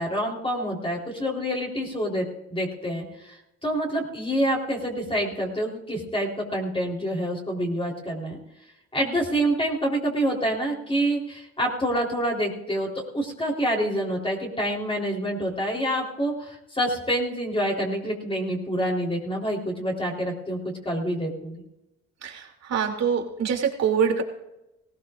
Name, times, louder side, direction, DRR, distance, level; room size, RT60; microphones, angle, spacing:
voice 1, 0.0-8.4 8.9-20.6 20.8-21.5, equal, 20° left, -2 dB, 3.8 m, -27 dB
voice 2, 22.2-24.2, right 7 dB, 60° right, 1 dB, 3.0 m, -25 dB
19.5 x 17.0 x 2.6 m, 0.92 s
cardioid pair, 90°, 30 cm